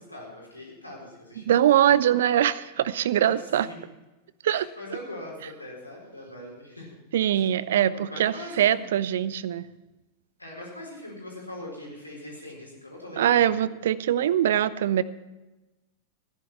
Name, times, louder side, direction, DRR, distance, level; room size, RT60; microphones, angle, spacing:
voice 1, 0.0-1.9 3.2-3.8 4.5-7.0 7.3-7.5 7.9-8.9 10.4-13.6, left 1 dB, 85° left, -2 dB, 4.3 m, -41 dB
voice 2, 1.5-3.7 4.4-4.7 7.1-9.7 13.2-15.0, right 11 dB, 60° right, 18 dB, 0.5 m, -22 dB
15.0 x 10.5 x 5.7 m, 1.1 s
figure-of-eight pair, 90°, 0 cm